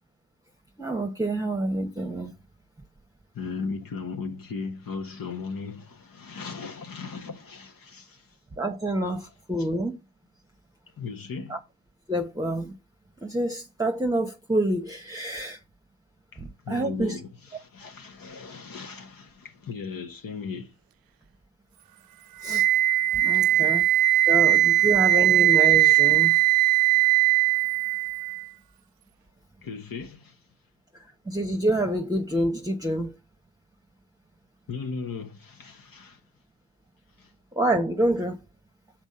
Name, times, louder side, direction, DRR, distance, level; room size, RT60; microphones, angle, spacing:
voice 1, 0.8-2.3 8.6-10.0 11.5-11.6 12.1-12.7 13.2-15.6 16.4-17.2 22.4-22.7 23.1-23.9 24.3-26.4 31.3-33.1 37.5-38.4, right 1 dB, 10° right, 1.1 m, -27 dB
voice 2, 3.3-8.4 9.6-9.7 11.0-11.6 16.3-20.7 23.3-24.4 24.7-24.9 29.6-30.4 34.7-36.2 37.2-37.3, left 5 dB, 65° left, 1.3 m, -37 dB
Wind instrument woodwind instrument, 22.4-28.4, right 16 dB, 70° right, 0.5 m, -20 dB
6.1 x 4.5 x 5.6 m
supercardioid pair, 45°, 37 cm